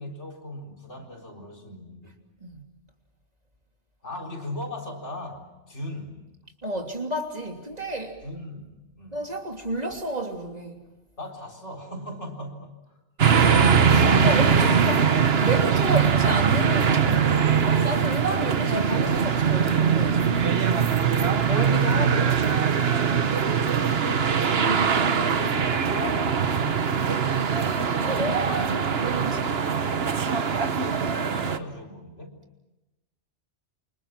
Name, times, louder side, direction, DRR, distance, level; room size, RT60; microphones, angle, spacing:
voice 1, 0.0-2.1 4.0-6.2 8.2-9.2 11.2-12.8 21.0-22.7 24.5-27.0 30.4-32.4, left 1 dB, 75° left, 1 dB, 4.5 m, -39 dB
voice 2, 6.6-8.2 9.1-10.8 13.8-20.3 21.5-22.4 28.0-29.6, right 1 dB, 35° right, 2 dB, 3.2 m, -31 dB
sound 1, 13.2-31.6, right 6 dB, 60° right, 1.3 m, -22 dB
28.5 x 26.0 x 6.0 m, 1.0 s
omnidirectional pair, 1.2 m